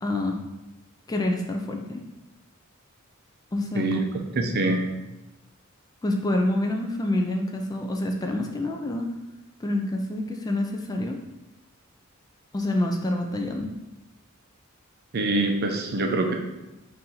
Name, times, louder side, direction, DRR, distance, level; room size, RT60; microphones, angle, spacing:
voice 1, 0.0-0.4 1.1-2.0 3.5-4.0 6.0-9.1 9.6-11.2 12.5-13.7, left 1 dB, 20° left, 2 dB, 0.3 m, -27 dB
voice 2, 4.4-4.8 15.1-16.3, right 2 dB, 50° right, 3 dB, 0.5 m, -24 dB
4.2 x 2.6 x 3.8 m, 0.99 s
head